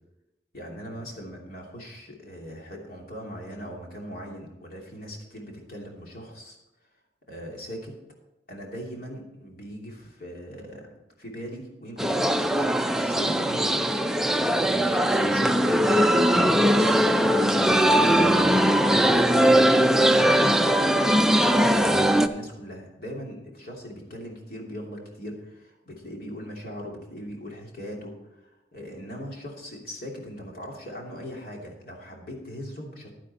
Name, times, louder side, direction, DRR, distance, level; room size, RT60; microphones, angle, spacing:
voice 1, 0.5-6.6 7.3-7.9 8.5-10.9 11.2-17.0 17.3-33.1, equal, 55° left, -1 dB, 2.9 m, -40 dB
sound 1, 12.0-22.3, equal, 5° right, 0.4 m, -20 dB
11.0 x 10.0 x 4.3 m, 0.95 s
head